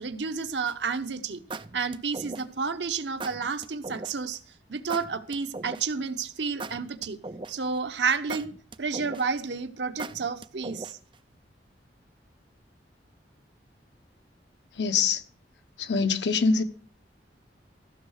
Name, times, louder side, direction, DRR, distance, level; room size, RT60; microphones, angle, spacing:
voice 1, 0.0-1.4 1.7-4.4 4.7-7.2 7.5-8.5 8.8-11.0, right 5 dB, 85° right, 1.0 m, -30 dB
sound 1, 0.7-1.0 1.5-2.7 3.2-4.1 4.9-6.1 6.6-7.7 8.3-9.4 10.0-11.1, right 3 dB, 30° right, 0.5 m, -39 dB
voice 2, 14.8-15.2 15.8-16.6, left 5 dB, 75° left, 1.0 m, -24 dB
15.0 x 6.5 x 6.5 m
head